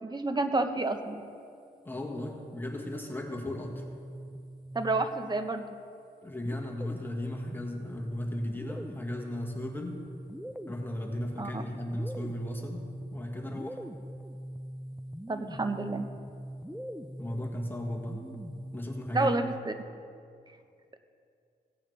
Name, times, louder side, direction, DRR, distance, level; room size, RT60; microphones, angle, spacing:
voice 1, 0.0-1.2 4.7-5.7 11.4-11.6 15.3-16.1 19.1-19.7, right 2 dB, 25° right, 7 dB, 1.0 m, -29 dB
voice 2, 1.8-3.8 6.2-10.0 10.7-12.8 13.1-13.8 17.2-18.2 18.7-19.3, left 1 dB, 10° left, -1 dB, 1.6 m, -36 dB
sound 1, 3.3-5.5 6.4-19.4, equal, 5° right, 0.5 m, -42 dB
17.0 x 8.7 x 3.3 m, 2.4 s
cardioid pair, 60°, 17 cm